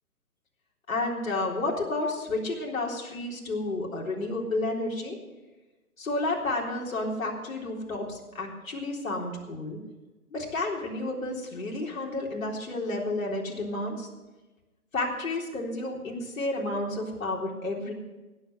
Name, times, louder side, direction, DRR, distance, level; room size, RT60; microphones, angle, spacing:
voice 1, 0.9-5.2 6.0-9.8 10.3-14.1 14.9-17.9, left 2 dB, 60° left, -1 dB, 3.9 m, -31 dB
18.0 x 8.0 x 6.3 m, 1.1 s
figure-of-eight pair, 155°, 45 cm